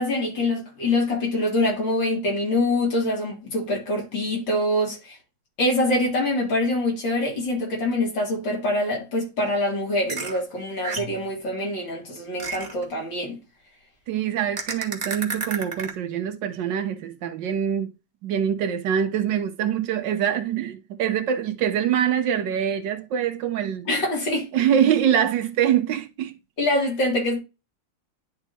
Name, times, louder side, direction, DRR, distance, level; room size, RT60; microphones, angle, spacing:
voice 1, 0.0-5.2 5.6-13.4 23.9-24.5 26.6-27.4, left 1 dB, 65° left, 3.3 m, -24 dB
sound 1, 10.1-10.4 10.8-11.2 12.4-12.8 14.6-15.9, right 4 dB, 25° right, 1.0 m, -30 dB
voice 2, 14.1-17.9 18.2-23.9 24.5-26.3, right 9 dB, 70° right, 1.3 m, -24 dB
11.0 x 3.7 x 2.8 m
omnidirectional pair, 2.2 m